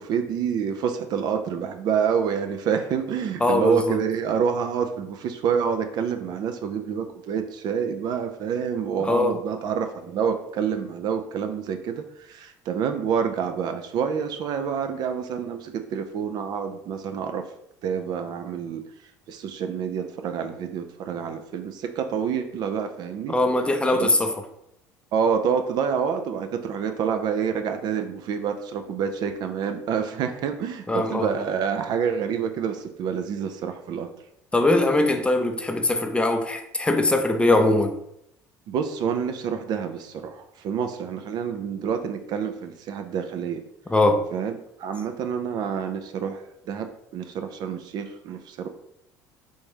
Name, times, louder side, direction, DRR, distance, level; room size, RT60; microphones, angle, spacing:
voice 1, 0.0-17.4 17.8-18.8 19.3-23.4 23.9-24.1 25.1-34.1 38.7-43.6 44.3-48.7, right 7 dB, 50° right, 0.4 m, -27 dB
voice 2, 3.4-4.0 9.0-9.4 23.3-24.3 30.9-31.3 34.5-38.0 43.9-44.2, left 2 dB, 10° left, 0.5 m, -21 dB
3.4 x 2.6 x 3.3 m
hypercardioid pair, 60°, 9 cm